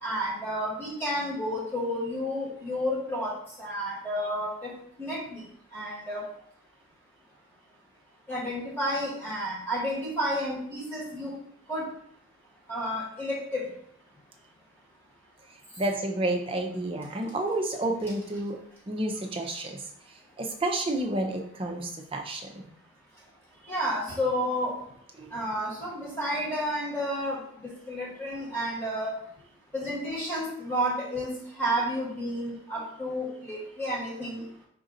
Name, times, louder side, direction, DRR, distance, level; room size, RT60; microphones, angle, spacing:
voice 1, 0.0-4.7 5.0-5.4 5.7-6.3 8.3-11.3 11.7-11.9 12.7-13.7 23.7-24.8 25.3-29.2 29.7-31.3 31.6-34.4, equal, 10° left, -6 dB, 1.4 m, -31 dB
voice 2, 15.8-18.6 18.9-22.7 25.2-25.3, right 1 dB, 25° right, 2 dB, 0.5 m, -30 dB
5.0 x 2.6 x 3.8 m, 0.67 s
head